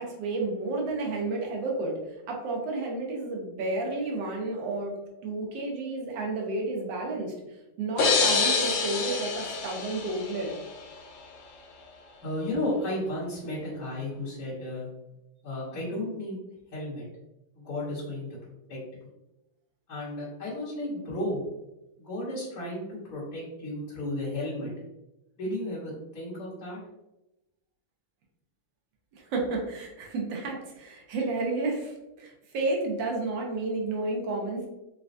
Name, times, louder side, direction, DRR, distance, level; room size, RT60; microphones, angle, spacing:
voice 1, 0.0-5.0 5.2-7.3 7.8-10.5 29.2-34.7, right 2 dB, 70° right, -1 dB, 1.3 m, -31 dB
sound 1, 8.0-10.8, left 5 dB, 85° left, 0.9 m, -26 dB
voice 2, 12.2-14.9 15.4-16.4 16.7-17.0 17.5-18.3 18.7-18.8 19.9-21.4 22.0-24.7 25.4-26.8, left 1 dB, 50° left, -12 dB, 1.5 m, -33 dB
4.1 x 2.2 x 2.5 m, 0.94 s
omnidirectional pair, 2.3 m